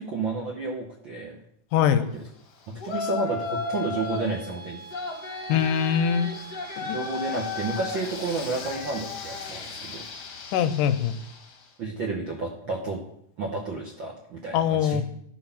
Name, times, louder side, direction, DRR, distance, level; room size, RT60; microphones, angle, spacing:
voice 1, 0.0-1.4 2.0-2.2 2.7-4.9 6.9-10.0 11.8-13.0 13.4-15.0, right 3 dB, 65° right, -1 dB, 1.1 m, -31 dB
voice 2, 1.7-2.1 5.5-6.3 6.8-7.0 10.5-11.2 14.5-15.0, left 8 dB, 90° left, 11 dB, 2.2 m, -23 dB
Yell, 2.8-4.4 4.9-11.6, left 4 dB, 50° left, 1.3 m, -35 dB
sound 1, 3.4-8.4, right 4 dB, 35° right, 1.5 m, -44 dB
12.5 x 4.7 x 5.7 m, 0.72 s
omnidirectional pair, 3.7 m